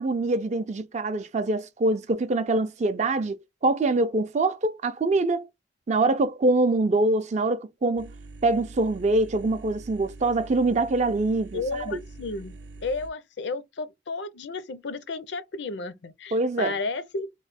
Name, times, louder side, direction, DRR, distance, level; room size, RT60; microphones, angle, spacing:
voice 1, 0.0-3.4 3.6-5.5 5.9-8.1 8.4-12.0 16.3-16.7, right 2 dB, 40° right, 0.4 m, -24 dB
sound 1, 8.0-13.1, right 2 dB, 75° right, 0.7 m, -44 dB
voice 2, 11.5-12.6 12.8-17.3, left 3 dB, 70° left, 0.5 m, -33 dB
3.0 x 2.1 x 4.1 m
head